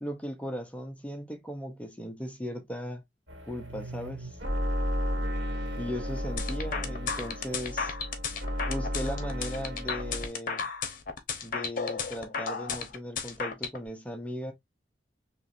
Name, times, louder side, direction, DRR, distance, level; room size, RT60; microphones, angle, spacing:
voice 1, 0.0-3.0 3.5-4.4 5.8-7.9 8.7-10.7 11.4-14.5, equal, 10° left, 0.6 m, -37 dB
sound 1, 3.3-10.3, equal, 80° right, 2.0 m, -33 dB
sound 2, 6.4-13.8, left 5 dB, 50° left, 0.9 m, -33 dB
4.4 x 3.0 x 2.5 m
head